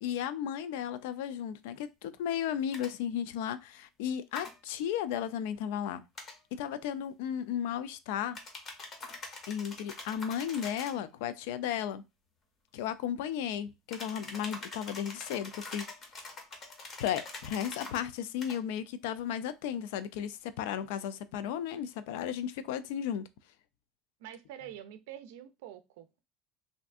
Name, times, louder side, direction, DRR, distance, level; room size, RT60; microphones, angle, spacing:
voice 1, 0.0-6.0 6.5-8.4 9.5-12.0 12.7-15.9 17.0-23.3, left 9 dB, 75° left, 0.3 m, -34 dB
sound 1, 2.7-2.9 4.3-4.5 6.1-6.4 8.3-11.0 13.9-18.0 18.4-18.6, left 2 dB, 25° left, 0.6 m, -44 dB
voice 2, 24.2-26.2, right 11 dB, 90° right, 0.4 m, -46 dB
3.3 x 2.5 x 2.4 m
cardioid pair, 175°, 0 cm